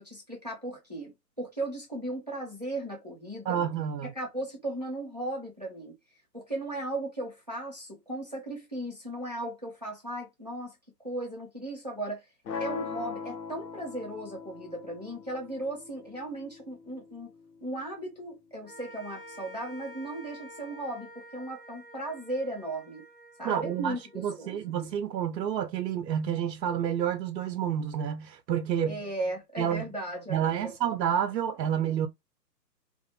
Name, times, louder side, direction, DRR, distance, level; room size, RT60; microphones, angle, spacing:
voice 1, 0.0-3.6 4.0-5.9 6.3-12.2 12.6-17.3 17.6-23.0 23.4-24.6 28.9-30.7, right 1 dB, 25° right, 0.5 m, -36 dB
voice 2, 3.5-4.1 23.4-29.0 29.6-29.9 30.3-32.1, right 9 dB, 85° right, 0.6 m, -29 dB
sound 1, 12.5-18.5, left 5 dB, 75° left, 0.9 m, -41 dB
sound 2, 18.6-25.1, equal, 35° left, 0.4 m, -49 dB
2.5 x 2.3 x 2.6 m
hypercardioid pair, 170°, 50 cm